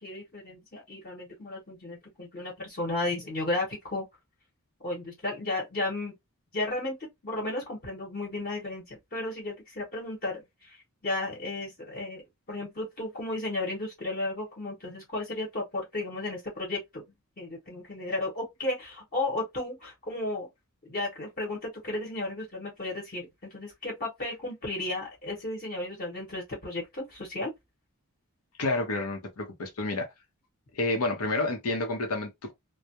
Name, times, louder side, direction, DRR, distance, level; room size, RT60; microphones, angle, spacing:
voice 1, 0.0-4.1 4.8-6.1 6.5-10.8 11.0-17.0 17.4-20.5 20.8-27.5, left 2 dB, 45° left, 1.0 m, -34 dB
voice 2, 28.6-30.1 30.7-32.5, left 2 dB, 90° left, 0.7 m, -29 dB
2.3 x 2.0 x 2.7 m
head